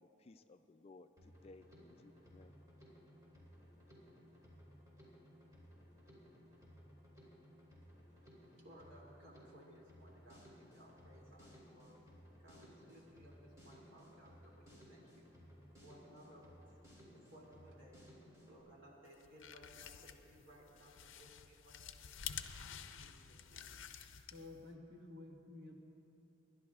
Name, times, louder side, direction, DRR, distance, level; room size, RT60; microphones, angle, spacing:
voice 1, 0.0-2.5, left 2 dB, 30° left, 9 dB, 0.3 m, -60 dB
Drum kit, 1.2-18.6, equal, 15° right, 3.3 m, -60 dB
voice 2, 8.1-12.0 12.4-15.3 15.8-16.5 17.1-18.0 18.5-22.2 22.7-23.8, equal, 80° right, -3 dB, 2.6 m, -61 dB
sound 1, 19.1-24.7, left 8 dB, 80° left, 0.5 m, -50 dB
voice 3, 24.3-25.8, left 2 dB, 50° right, 0 dB, 1.5 m, -52 dB
27.5 x 11.5 x 2.4 m, 2.8 s
head